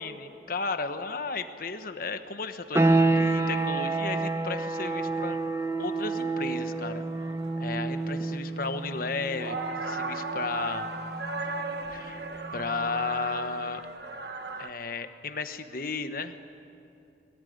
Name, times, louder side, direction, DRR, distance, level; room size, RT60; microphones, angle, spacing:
voice 1, 0.0-2.8 3.1-5.4 5.8-7.1 7.6-10.9 11.9-12.2 12.5-13.8 14.6-16.3, left 4 dB, 55° left, 8 dB, 1.2 m, -34 dB
sound 1, 2.7-13.3, right 2 dB, 15° right, 0.8 m, -29 dB
sound 2, 2.7-2.8 3.2-3.3 3.5-3.9 4.3-5.7 6.1-14.7, right 3 dB, 65° right, 1.4 m, -37 dB
22.5 x 19.5 x 9.5 m, 2.6 s
head